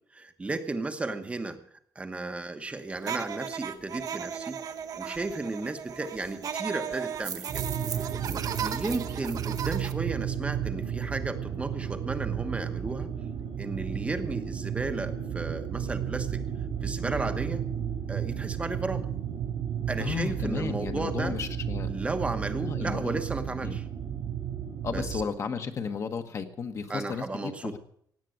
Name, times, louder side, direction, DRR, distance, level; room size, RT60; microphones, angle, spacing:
voice 1, 0.1-1.6 1.9-4.6 4.9-7.6 8.2-13.1 13.6-16.4 16.8-17.6 18.1-19.1 19.9-21.3 21.9-23.9 24.9-25.2 26.9-27.8, right 3 dB, 15° right, 7 dB, 1.0 m, -34 dB
sound 1, 3.0-9.9, right 8 dB, 55° right, 1.0 m, -36 dB
sound 2, 7.5-25.2, right 8 dB, 80° right, 3.7 m, -33 dB
voice 2, 20.0-21.9 22.6-23.2 23.6-23.8 24.8-27.8, left 6 dB, 40° left, 7 dB, 1.2 m, -34 dB
17.0 x 9.1 x 7.7 m, 0.65 s
wide cardioid pair, 175°, 7 cm